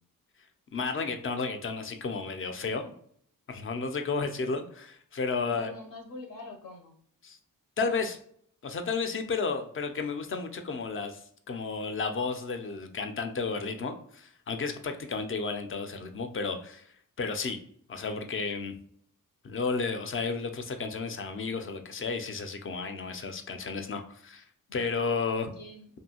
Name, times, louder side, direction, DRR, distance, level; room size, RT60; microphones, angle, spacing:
voice 1, 0.7-2.9 3.5-5.7 7.2-7.4 7.8-8.2 8.6-16.8 17.2-17.6 17.9-18.8 19.4-24.4 24.7-25.5, left 4 dB, 40° left, 6 dB, 0.4 m, -32 dB
voice 2, 5.4-7.0 25.2-25.9, left 2 dB, 75° left, 2 dB, 0.7 m, -45 dB
2.6 x 2.6 x 2.8 m, 0.63 s
wide cardioid pair, 105°, 33 cm